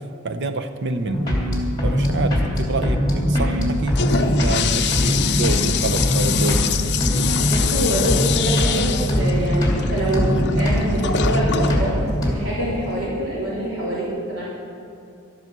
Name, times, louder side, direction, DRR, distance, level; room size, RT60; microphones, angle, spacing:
voice 1, 0.0-1.4 1.8-6.8, right 2 dB, 55° right, 7 dB, 0.8 m, -27 dB
sound 1, 1.0-12.3, equal, 20° left, 2.8 m, -22 dB
sound 2, 3.5-12.3, equal, ahead, 2.4 m, -33 dB
Toilet flush, 3.7-13.1, left 8 dB, 55° left, 0.6 m, -26 dB
voice 2, 7.5-14.4, right 1 dB, 75° right, -7 dB, 3.6 m, -25 dB
13.0 x 10.5 x 6.7 m, 2.6 s
head